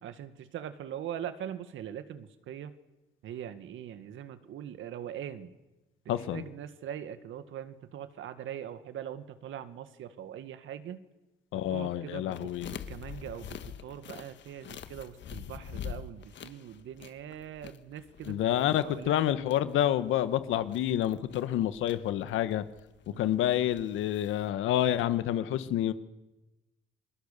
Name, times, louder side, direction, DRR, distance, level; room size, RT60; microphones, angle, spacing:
voice 1, 0.0-2.7 3.2-5.5 6.2-11.1 11.5-19.3 23.1-23.3, right 10 dB, 80° right, 11 dB, 2.0 m, -42 dB
voice 2, 6.1-6.4 11.5-12.7 18.3-22.6 23.2-25.9, left 12 dB, 90° left, 13 dB, 1.5 m, -28 dB
sound 1, 12.3-24.5, left 8 dB, 65° left, 1.6 m, -46 dB
30.0 x 21.5 x 6.9 m, 1.1 s
cardioid pair, 90°, 20 cm